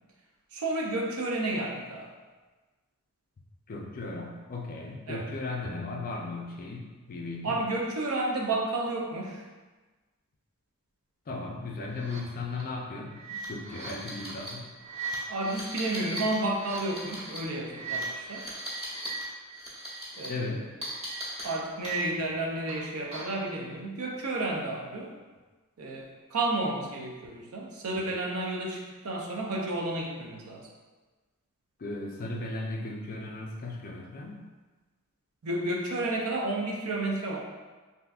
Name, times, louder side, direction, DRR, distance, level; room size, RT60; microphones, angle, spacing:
voice 1, 0.5-2.1 5.1-5.3 7.4-9.4 15.3-18.5 20.2-20.5 21.4-25.1 25.8-30.7 35.4-37.4, right 2 dB, 70° right, 0 dB, 0.5 m, -31 dB
voice 2, 3.7-7.6 11.3-14.6 20.3-20.7 31.8-34.4, left 3 dB, 40° left, 0 dB, 0.4 m, -36 dB
sound 1, 12.0-12.2 12.5-12.6 13.1-19.2 19.5-20.3 20.8-22.3 22.7-23.4, right 2 dB, 30° right, 0.9 m, -38 dB
3.4 x 2.5 x 2.4 m, 1.3 s
head